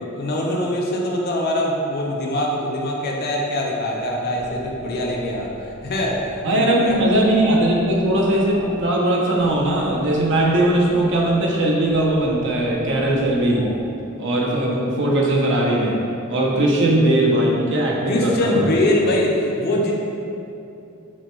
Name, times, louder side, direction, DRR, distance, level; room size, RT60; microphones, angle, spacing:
voice 1, 0.0-7.0 18.1-19.9, left 1 dB, 45° left, -1 dB, 0.5 m, -23 dB
sound 1, 4.0-13.8, equal, 30° right, 0.8 m, -39 dB
voice 2, 6.4-13.7 14.2-16.0 16.3-18.8, right 1 dB, 60° right, -2 dB, 0.6 m, -19 dB
5.9 x 2.2 x 3.0 m, 2.7 s
head